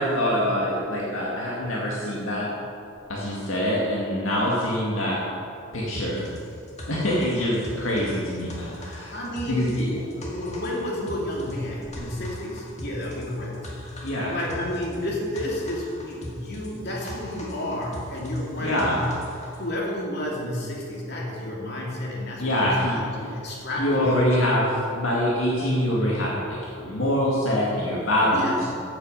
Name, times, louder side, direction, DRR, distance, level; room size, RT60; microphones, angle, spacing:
voice 1, 0.0-2.5 3.1-5.2 5.7-6.3 6.9-9.1 9.5-9.9 14.0-14.3 18.6-19.0 22.4-23.0 23.8-28.7, equal, 70° left, -5 dB, 2.2 m, -24 dB
sound 1, 5.9-19.6, left 1 dB, 30° left, 2.0 m, -40 dB
voice 2, 9.1-13.6 14.3-19.2 19.6-22.5 22.8-24.2 28.2-28.6, left 1 dB, 50° left, -3 dB, 2.8 m, -31 dB
14.5 x 8.5 x 5.6 m, 2.5 s
head